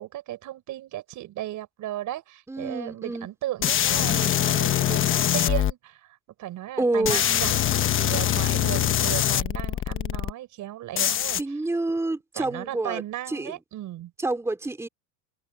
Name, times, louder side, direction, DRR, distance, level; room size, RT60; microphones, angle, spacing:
voice 1, 0.0-5.0 5.3-7.5 7.8-11.6 12.3-14.1, right 14 dB, 40° right, 4.5 m, -35 dB
voice 2, 2.5-3.3 6.8-7.2 11.3-13.0 13.3-13.5 14.2-14.9, right 2 dB, 5° right, 3.0 m, -28 dB
sound 1, 3.6-5.7 7.0-10.3 11.0-11.4, left 11 dB, 25° left, 1.1 m, -23 dB
cardioid pair, 155°, 48 cm